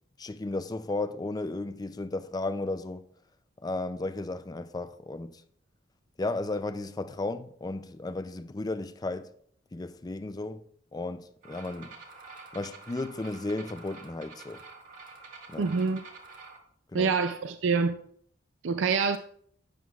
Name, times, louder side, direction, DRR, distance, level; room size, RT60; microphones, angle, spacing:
voice 1, 0.2-3.1 3.6-5.4 6.2-9.3 9.7-10.6 10.9-11.9 12.5-14.6 15.5-15.7 16.9-17.2, left 2 dB, 20° left, 0.4 m, -34 dB
sound 1, 11.4-16.6, right 4 dB, 45° right, 1.7 m, -48 dB
voice 2, 15.6-16.0 16.9-17.9 18.6-19.2, right 5 dB, 70° right, 0.4 m, -26 dB
12.0 x 9.3 x 2.4 m
head